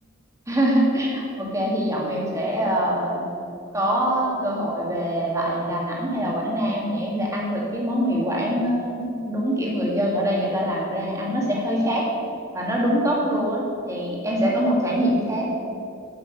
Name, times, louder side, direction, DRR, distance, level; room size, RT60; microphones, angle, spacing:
voice 1, 0.5-3.2 3.7-12.1 12.5-15.5, equal, 15° right, -4 dB, 2.0 m, -24 dB
9.0 x 6.3 x 7.6 m, 2.5 s
head